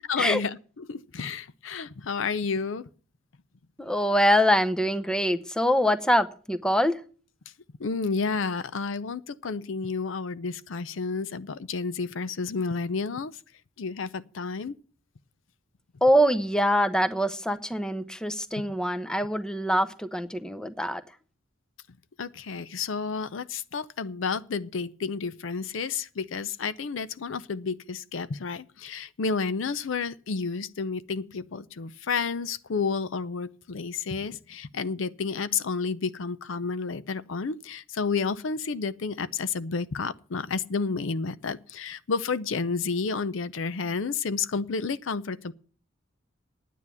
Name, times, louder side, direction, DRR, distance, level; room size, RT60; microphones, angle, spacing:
voice 1, 0.1-2.9 7.8-13.3 13.8-14.7 22.2-45.5, left 5 dB, 75° left, 0.6 m, -31 dB
voice 2, 3.8-7.0 16.0-21.0, equal, 5° left, 0.7 m, -24 dB
9.7 x 9.3 x 6.9 m
head